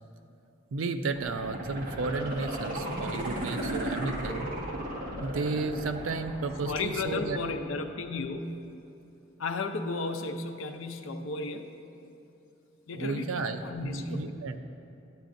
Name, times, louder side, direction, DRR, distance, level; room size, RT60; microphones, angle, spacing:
voice 1, 0.7-4.5 5.2-7.4 12.9-14.6, right 3 dB, 85° right, 9 dB, 0.5 m, -33 dB
sound 1, 1.1-8.0 8.4-8.5, right 1 dB, 45° right, 1.5 m, -36 dB
voice 2, 6.6-8.5 9.4-11.7 12.9-14.3, left 3 dB, 70° left, 7 dB, 0.6 m, -34 dB
11.5 x 9.2 x 2.6 m, 2.9 s
head